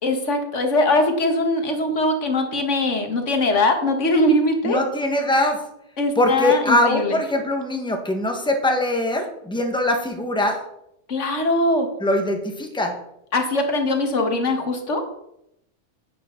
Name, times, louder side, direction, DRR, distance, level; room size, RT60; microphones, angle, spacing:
voice 1, 0.0-4.8 6.0-7.2 11.1-11.9 13.3-15.0, left 2 dB, 85° left, 5 dB, 1.8 m, -21 dB
voice 2, 4.6-5.6 6.2-10.6 12.0-12.9, left 1 dB, 5° left, 3 dB, 1.4 m, -22 dB
10.5 x 9.3 x 3.8 m, 0.79 s
omnidirectional pair, 1.2 m